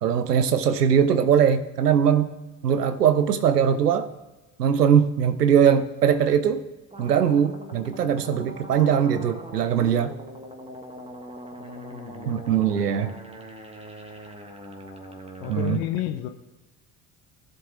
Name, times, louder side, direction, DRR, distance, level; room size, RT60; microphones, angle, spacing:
voice 1, 0.0-2.3 2.6-4.1 4.6-6.6 7.0-10.1 12.3-13.1 15.5-15.8, right 8 dB, 85° right, 12 dB, 0.6 m, -21 dB
sound 1, 6.9-15.8, right 1 dB, 15° right, 1.4 m, -41 dB
voice 2, 11.6-13.2 15.4-16.3, left 12 dB, 65° left, 7 dB, 0.7 m, -33 dB
17.0 x 7.6 x 2.5 m, 1.1 s
figure-of-eight pair, 60°, 46 cm